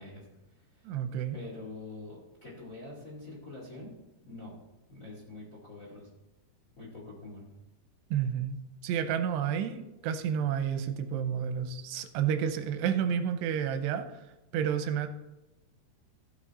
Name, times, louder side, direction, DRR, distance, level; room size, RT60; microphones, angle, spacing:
voice 1, 0.0-0.9 1.3-3.9 4.2-4.6 4.9-6.1 6.8-7.4, left 2 dB, 30° left, -4 dB, 1.7 m, -45 dB
voice 2, 0.8-1.4 8.1-8.6 8.8-14.3 14.5-15.1, right 8 dB, 90° right, 8 dB, 2.8 m, -30 dB
14.5 x 7.3 x 4.3 m, 0.98 s
omnidirectional pair, 4.8 m